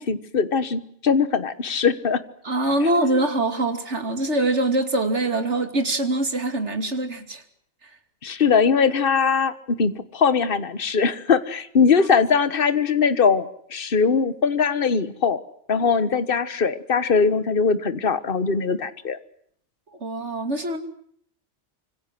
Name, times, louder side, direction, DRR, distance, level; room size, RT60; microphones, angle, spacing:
voice 1, 0.0-2.2 8.2-9.5 9.8-15.4 15.7-19.2, left 5 dB, 50° left, 13 dB, 1.5 m, -21 dB
voice 2, 2.4-7.4 7.8-7.9 20.0-20.8, right 2 dB, 75° right, 7 dB, 3.1 m, -23 dB
26.5 x 25.0 x 7.7 m, 0.65 s
omnidirectional pair, 1.2 m